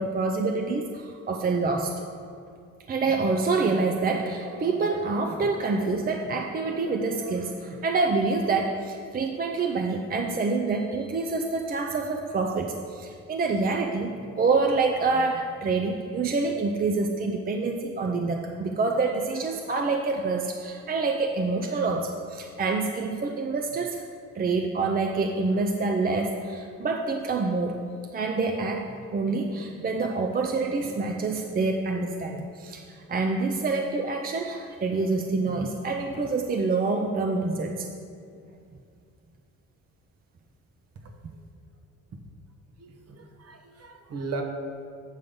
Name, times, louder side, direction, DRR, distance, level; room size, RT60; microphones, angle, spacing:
voice 1, 0.0-2.0 2.9-24.0 24.4-27.8 28.1-37.9, right 3 dB, 30° right, 2 dB, 0.5 m, -27 dB
voice 2, 42.8-44.4, right 3 dB, 55° right, 4 dB, 1.1 m, -37 dB
8.2 x 3.8 x 6.9 m, 2.4 s
cardioid pair, 90°, 30 cm